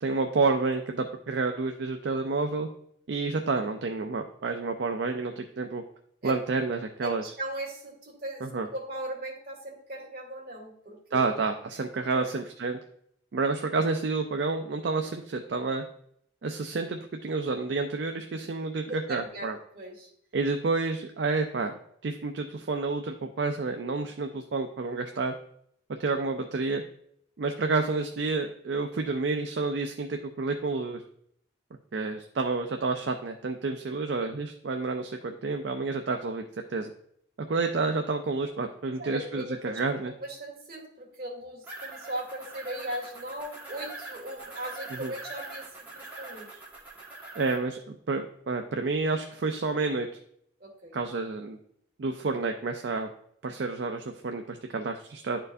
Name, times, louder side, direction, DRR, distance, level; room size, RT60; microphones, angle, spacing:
voice 1, 0.0-2.7 3.1-5.8 6.2-7.2 8.4-8.7 11.1-12.8 13.3-15.8 16.4-19.6 20.3-21.7 22.0-25.3 26.0-26.8 27.4-31.0 31.9-36.4 36.7-36.9 37.5-40.1 44.9-45.1 47.4-50.1 50.9-51.6 52.0-53.1 53.4-55.4, right 3 dB, 65° right, 5 dB, 0.5 m, -29 dB
voice 2, 7.0-11.3 12.1-12.3 18.8-20.1 39.0-39.8 40.2-46.6 50.6-50.9, right 1 dB, 50° right, -2 dB, 2.0 m, -38 dB
sound 1, 41.6-47.6, right 2 dB, 10° right, 1.6 m, -43 dB
10.5 x 4.4 x 2.6 m, 0.68 s
head